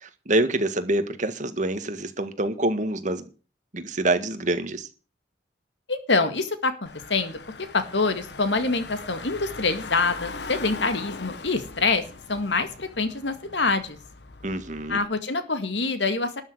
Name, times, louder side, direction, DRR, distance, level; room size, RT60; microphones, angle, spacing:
voice 1, 0.0-3.3 3.7-4.9 14.4-15.0, right 2 dB, 45° right, 1.8 m, -26 dB
voice 2, 5.9-12.0 12.3-14.0 14.9-16.4, left 3 dB, 90° left, 2.0 m, -25 dB
Car / Engine, 6.9-15.1, left 4 dB, 70° left, 1.3 m, -40 dB
12.5 x 6.5 x 9.8 m
head